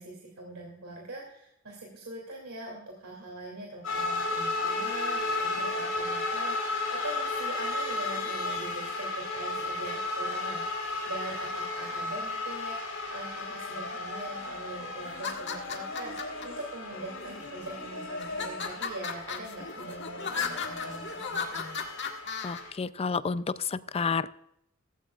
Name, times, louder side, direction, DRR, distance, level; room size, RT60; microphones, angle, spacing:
voice 1, 0.0-21.9, right 2 dB, 90° right, -1 dB, 2.7 m, -42 dB
sound 1, 3.8-22.7, left 2 dB, 85° left, 4.8 m, -34 dB
sound 2, 15.1-16.5 17.2-17.7 18.2-22.6, left 6 dB, 60° left, 1.7 m, -35 dB
voice 2, 22.4-24.3, left 5 dB, 30° left, 15 dB, 0.4 m, -30 dB
16.0 x 16.0 x 2.4 m, 0.78 s
head